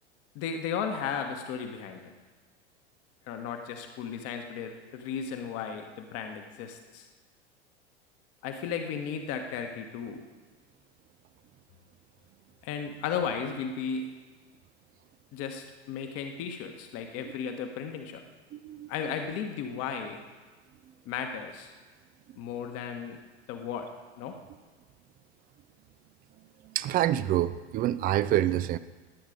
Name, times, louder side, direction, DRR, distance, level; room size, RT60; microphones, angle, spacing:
voice 1, 0.3-2.1 3.3-7.1 8.4-10.2 12.6-14.1 15.3-18.2 18.9-20.2 21.0-21.7 22.4-23.2 23.5-23.9 24.2-24.4, left 7 dB, 40° left, 5 dB, 1.3 m, -35 dB
voice 2, 18.5-18.9 26.6-28.8, right 13 dB, 25° right, 16 dB, 0.5 m, -27 dB
19.5 x 8.7 x 5.2 m, 1.3 s
figure-of-eight pair, 80°, 34 cm